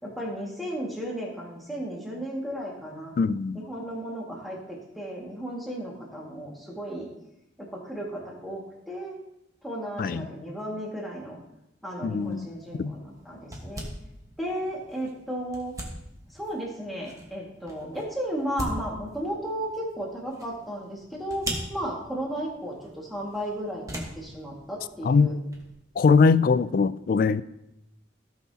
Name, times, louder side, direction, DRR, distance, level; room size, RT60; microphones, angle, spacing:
voice 1, 0.0-3.2 3.7-7.1 7.6-9.2 9.6-11.4 11.8-13.9 14.4-15.7 16.3-25.4, equal, ahead, 1.9 m, -34 dB
voice 2, 3.2-3.6 10.0-10.3 12.0-12.5 12.8-13.0 25.0-25.3 26.0-27.4, left 4 dB, 50° left, 0.3 m, -21 dB
sound 1, 12.2-25.7, right 1 dB, 20° right, 1.4 m, -42 dB
16.5 x 5.7 x 2.9 m
head